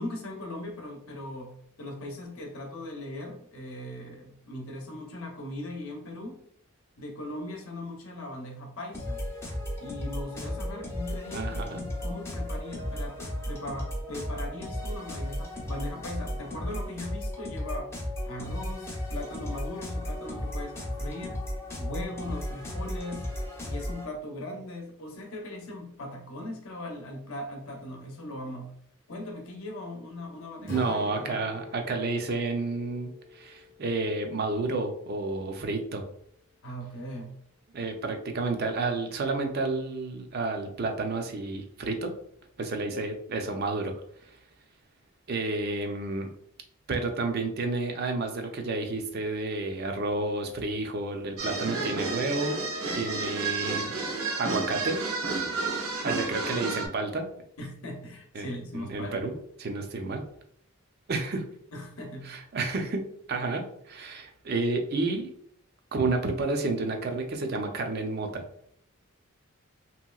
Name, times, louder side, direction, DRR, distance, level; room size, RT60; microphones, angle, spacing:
voice 1, 0.0-6.4 7.0-9.3 9.8-17.9 18.2-21.4 21.8-23.3 23.6-28.7 29.1-31.4 36.6-37.3 57.6-59.2 61.7-62.3, left 1 dB, 70° left, 2 dB, 0.7 m, -39 dB
sound 1, 8.9-24.1, left 1 dB, 10° left, 0.4 m, -35 dB
voice 2, 11.3-11.8 30.6-36.0 37.7-42.1 42.6-43.9 44.3-44.4 45.3-46.3 46.9-52.6 52.9-53.9 54.4-55.0 56.0-57.3 58.3-58.5 58.7-59.3 59.6-60.2 61.1-61.4 62.2-63.0 63.3-65.3 65.9-68.4, right 3 dB, 45° right, 4 dB, 0.4 m, -30 dB
Strum, 30.7-34.8, left 3 dB, 40° left, 0.8 m, -44 dB
sound 2, 51.4-56.9, right 3 dB, 80° right, 0.7 m, -31 dB
3.0 x 2.9 x 2.3 m, 0.67 s
head